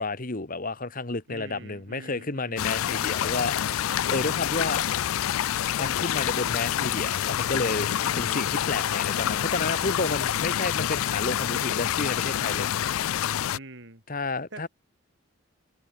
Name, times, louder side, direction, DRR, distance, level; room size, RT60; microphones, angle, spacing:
voice 1, 0.0-4.8 5.8-12.7 14.1-14.7, left 3 dB, 40° left, 1.5 m, -31 dB
voice 2, 1.3-2.8 4.3-4.7 8.0-8.5 13.5-14.0 14.5-14.7, right 2 dB, 55° right, 4.6 m, -45 dB
sound 1, 2.6-13.6, left 10 dB, 80° left, 0.4 m, -27 dB
head